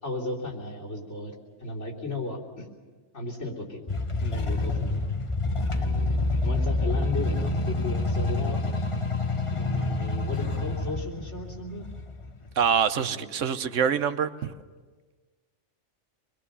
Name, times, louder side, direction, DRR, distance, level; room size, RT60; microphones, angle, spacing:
voice 1, 0.0-1.3 1.6-2.7 3.1-3.8 4.2-5.0 5.7-8.6 9.5-11.9 12.9-13.2 13.6-13.9, left 2 dB, 70° left, -3 dB, 3.8 m, -35 dB
sound 1, 3.9-12.8, left 2 dB, 25° left, 1.0 m, -28 dB
voice 2, 12.6-14.5, right 7 dB, 85° right, 11 dB, 1.2 m, -25 dB
25.5 x 22.0 x 6.8 m, 1.4 s
omnidirectional pair, 1.3 m